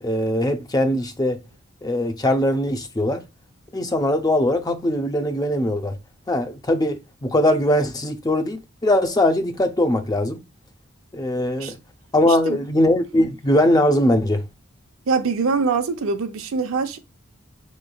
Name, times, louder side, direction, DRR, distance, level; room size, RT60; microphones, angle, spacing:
voice 1, 0.0-1.4 1.8-3.2 3.7-6.0 6.3-10.4 11.1-11.8 12.1-14.4, left 1 dB, 20° left, 0.5 m, -21 dB
voice 2, 12.3-12.6 15.1-17.0, right 4 dB, 70° right, 0.6 m, -23 dB
5.8 x 3.1 x 2.3 m
head